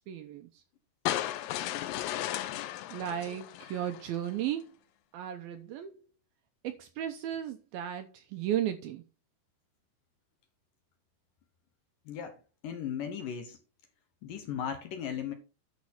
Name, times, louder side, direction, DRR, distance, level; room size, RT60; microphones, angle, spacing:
voice 1, 0.1-0.6 2.9-4.7 5.1-6.0 6.6-9.0, right 11 dB, 80° right, 2.2 m, -35 dB
sound 1, 1.1-4.3, left 13 dB, 85° left, 2.9 m, -35 dB
voice 2, 12.1-13.6 14.2-15.3, left 8 dB, 70° left, 2.2 m, -37 dB
10.5 x 6.0 x 4.2 m
omnidirectional pair, 4.9 m